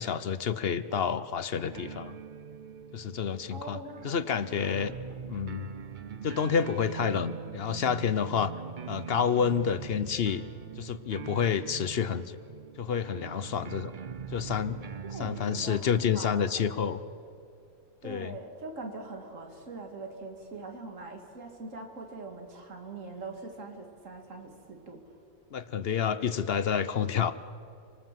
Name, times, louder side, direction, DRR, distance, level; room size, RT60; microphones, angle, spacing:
voice 1, 0.0-2.2 2.9-4.9 5.3-5.7 6.2-8.5 8.9-10.4 10.8-12.3 12.8-13.9 14.3-14.8 15.2-17.0 18.0-18.4 25.5-27.3, left 7 dB, 50° left, 14 dB, 0.9 m, -29 dB
sound 1, 1.7-15.8, right 7 dB, 45° right, 0.7 m, -42 dB
voice 2, 3.5-4.1 4.6-4.9 15.1-17.0 18.0-25.0, right 3 dB, 60° right, 4 dB, 2.6 m, -43 dB
28.0 x 19.0 x 7.5 m, 2.5 s
omnidirectional pair, 1.5 m